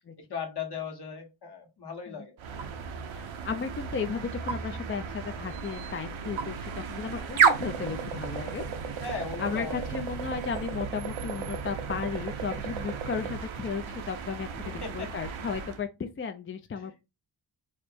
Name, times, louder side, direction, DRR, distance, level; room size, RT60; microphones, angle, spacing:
voice 1, 0.3-2.4 9.0-10.0 10.3-10.5 14.6-15.1 16.8-17.0, left 5 dB, 55° left, 1.4 m, -38 dB
sound 1, 2.4-15.8, right 6 dB, 85° right, 0.8 m, -33 dB
voice 2, 3.1-8.6 9.4-17.0, left 6 dB, 30° left, 0.4 m, -35 dB
4.9 x 2.0 x 4.3 m
wide cardioid pair, 95°, 46 cm